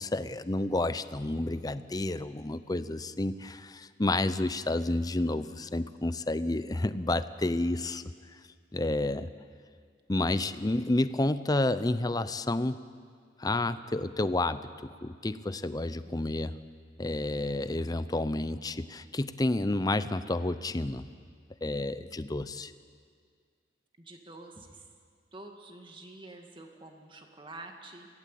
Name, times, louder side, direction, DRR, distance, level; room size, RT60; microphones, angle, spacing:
voice 1, 0.0-8.0 8.7-9.3 10.1-12.8 13.4-16.5 17.0-21.1 21.6-22.7, left 2 dB, 20° left, 13 dB, 0.6 m, -30 dB
voice 2, 24.0-24.9 25.3-28.1, right 2 dB, 30° right, 3 dB, 2.1 m, -48 dB
22.5 x 17.0 x 8.4 m, 2.1 s
head